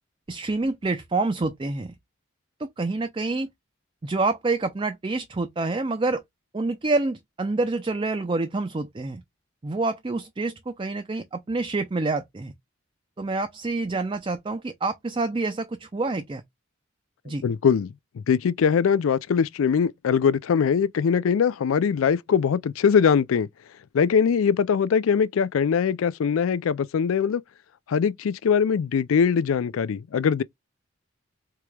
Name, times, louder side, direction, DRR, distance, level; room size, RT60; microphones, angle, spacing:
voice 1, 0.3-1.9 2.6-3.5 4.0-6.2 6.5-9.2 9.6-12.5 13.2-16.4 17.2-17.4, right 3 dB, 25° right, 0.4 m, -27 dB
voice 2, 17.4-23.5 23.9-27.4 27.9-30.4, left 6 dB, 85° left, 0.4 m, -22 dB
4.7 x 2.9 x 2.2 m
head